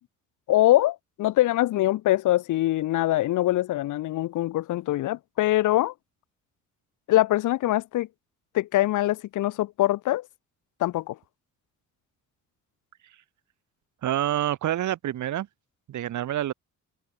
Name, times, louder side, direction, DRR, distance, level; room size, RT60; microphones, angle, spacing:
voice 1, 0.5-5.9 7.1-8.1 8.5-10.3 10.8-11.2, left 15 dB, 80° left, 1.4 m, -23 dB
voice 2, 14.0-15.5 15.9-16.5, right 12 dB, 75° right, 4.0 m, -27 dB
cardioid pair, 90°, 30 cm